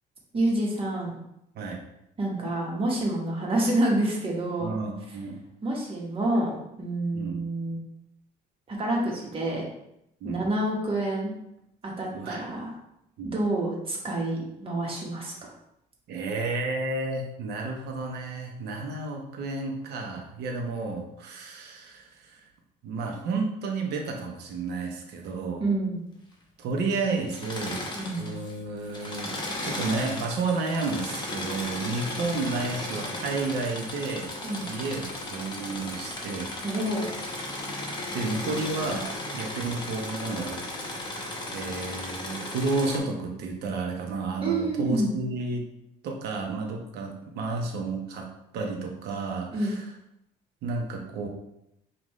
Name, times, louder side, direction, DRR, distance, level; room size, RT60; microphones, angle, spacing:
voice 1, 0.3-1.2 2.2-4.8 5.6-7.8 8.7-9.6 10.2-11.3 11.8-12.7 13.3-15.5 25.6-26.0 28.0-28.3 34.4-34.6 36.6-37.1 44.4-45.1 49.5-49.8, right 1 dB, 35° right, -2 dB, 1.3 m, -28 dB
voice 2, 4.6-5.4 7.1-7.4 10.2-10.4 12.1-12.4 13.2-13.3 16.1-22.4 22.8-25.6 26.6-27.9 28.2-29.3 29.6-34.3 34.6-36.5 38.1-39.1 39.3-40.6 41.5-45.6 46.0-48.3 48.5-49.8 50.6-51.3, right 3 dB, 75° right, 1 dB, 0.9 m, -31 dB
Engine / Mechanisms, 27.2-28.5 28.8-43.0, left 1 dB, 25° left, 0.9 m, -35 dB
5.3 x 2.6 x 3.2 m, 0.81 s
cardioid pair, 110°, 17 cm